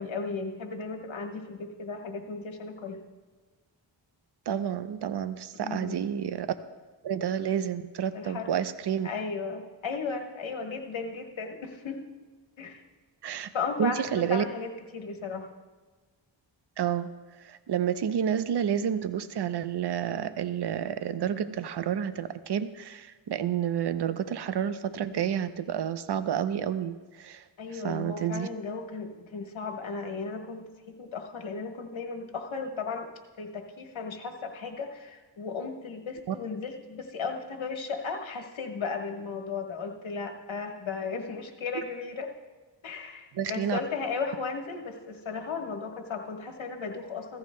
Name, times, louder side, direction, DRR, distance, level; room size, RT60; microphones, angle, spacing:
voice 1, 0.0-3.0 5.5-6.0 8.1-8.6 9.0-12.1 12.6-12.8 13.5-15.5 27.6-30.7 31.0-33.1 33.4-42.3 42.8-47.4, left 4 dB, 80° left, 3 dB, 1.4 m, -35 dB
voice 2, 4.5-6.5 7.0-9.1 13.2-13.5 13.8-14.4 16.8-17.1 17.4-27.4 27.7-28.5 36.3-36.4 41.7-41.8 43.3-43.8, right 9 dB, 60° right, 11 dB, 0.7 m, -30 dB
15.5 x 14.5 x 2.2 m, 1.4 s
cardioid pair, 60°, 46 cm